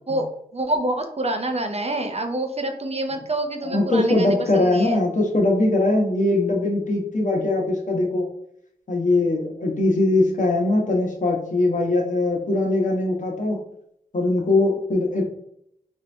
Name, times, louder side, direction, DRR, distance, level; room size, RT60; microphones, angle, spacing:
voice 1, 0.1-5.0, right 1 dB, 40° right, 5 dB, 0.6 m, -27 dB
voice 2, 3.6-8.3 8.9-13.6 14.1-15.2, left 2 dB, 55° left, -1 dB, 1.1 m, -21 dB
3.7 x 2.7 x 3.4 m, 0.72 s
cardioid pair, 45°, 16 cm